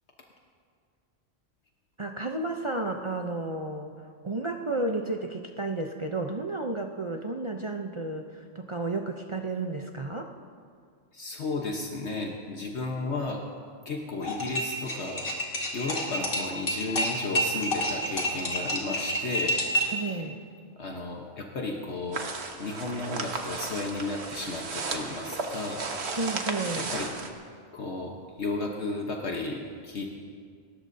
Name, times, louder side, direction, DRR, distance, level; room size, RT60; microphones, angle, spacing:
voice 1, 2.0-10.3 19.9-20.4 26.2-26.9, right 2 dB, 35° right, 2 dB, 0.6 m, -32 dB
voice 2, 11.1-13.4 13.8-15.3 15.7-19.6 20.8-22.2 22.6-25.8 26.8-27.1 27.7-30.1, left 3 dB, 65° left, 0 dB, 1.4 m, -33 dB
sound 1, 14.2-20.0, equal, 85° left, 2.6 m, -29 dB
sound 2, 22.1-27.3, right 3 dB, 65° right, 1.4 m, -34 dB
28.5 x 14.0 x 2.7 m, 2.1 s
omnidirectional pair, 1.2 m